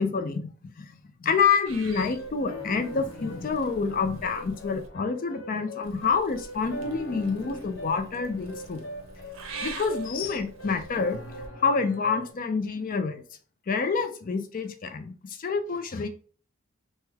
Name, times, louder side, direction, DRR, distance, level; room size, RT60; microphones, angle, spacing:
voice 1, 0.0-8.8 9.6-11.2 11.6-13.2 13.7-16.1, left 5 dB, 40° left, 8 dB, 0.4 m, -27 dB
Purr / Meow, 1.6-4.9 5.8-11.5, right 3 dB, 80° right, 0.6 m, -45 dB
sound 1, 2.1-12.3, left 1 dB, 65° left, 0.8 m, -41 dB
3.2 x 2.1 x 3.4 m, 0.42 s
head